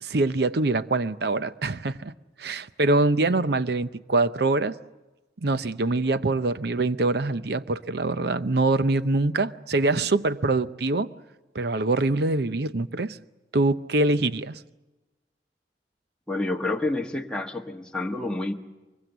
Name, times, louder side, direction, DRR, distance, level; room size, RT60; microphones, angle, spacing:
voice 1, 0.0-2.1 2.4-4.7 5.4-11.1 11.5-13.2 13.5-14.5, right 2 dB, 65° right, 0.7 m, -24 dB
voice 2, 16.3-18.5, left 2 dB, 5° left, 1.3 m, -28 dB
24.0 x 22.0 x 8.1 m
head